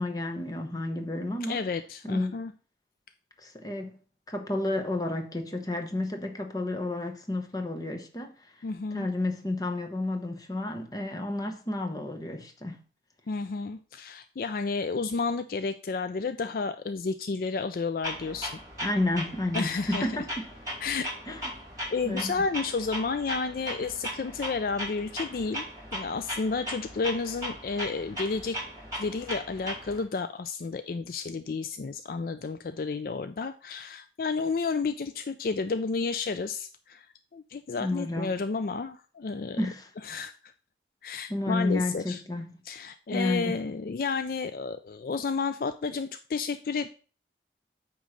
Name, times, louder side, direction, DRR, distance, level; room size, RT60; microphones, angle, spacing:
voice 1, 0.0-1.6 2.1-2.3 3.4-3.9 4.3-8.3 8.9-12.8 18.8-20.5 21.3-21.5 22.1-22.5 37.8-38.4 39.5-39.9 41.3-42.6 43.1-43.6, left 2 dB, 20° left, 0.9 m, -31 dB
voice 2, 1.5-2.5 8.6-9.1 13.3-18.6 19.5-20.2 20.8-21.1 21.9-25.6 25.9-28.6 29.0-37.1 37.3-39.6 40.0-40.3 41.0-42.2 42.7-46.9, left 4 dB, 55° left, 0.4 m, -31 dB
Clock, 18.0-30.0, equal, 20° right, 4.6 m, -38 dB
9.1 x 3.1 x 6.4 m
head